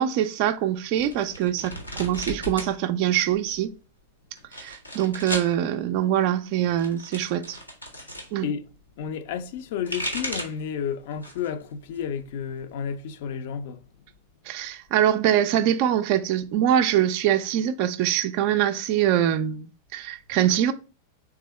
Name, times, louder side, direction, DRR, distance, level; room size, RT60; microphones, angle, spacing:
voice 1, 0.0-3.7 4.5-7.6 8.3-8.5 14.5-20.7, right 11 dB, 45° right, 0.3 m, -24 dB
sound 1, 1.0-2.7 3.0-3.7 4.4-5.5 6.5-8.3 9.6-10.7 11.1-11.6 11.9-12.9, equal, 90° left, 1.0 m, -35 dB
voice 2, 9.0-13.8, left 7 dB, 50° left, 0.4 m, -31 dB
3.6 x 3.3 x 4.3 m
figure-of-eight pair, 90°, 0 cm